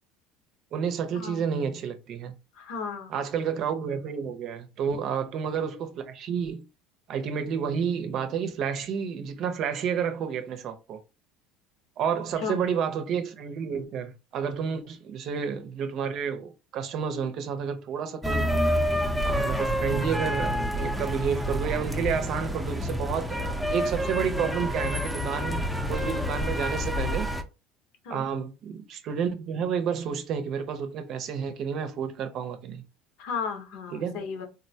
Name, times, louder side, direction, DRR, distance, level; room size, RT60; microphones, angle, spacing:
voice 1, 0.7-2.3 3.1-6.7 7.1-11.0 12.0-18.5 19.2-27.3 28.1-32.8 33.9-34.2, right 7 dB, 55° right, 0.6 m, -30 dB
voice 2, 2.5-3.1 4.9-5.0 12.4-12.6 28.0-28.3 33.2-34.5, left 5 dB, 70° left, 0.9 m, -34 dB
sound 1, 18.2-27.4, equal, ahead, 0.6 m, -28 dB
3.7 x 2.2 x 2.7 m
supercardioid pair, 95°, 0 cm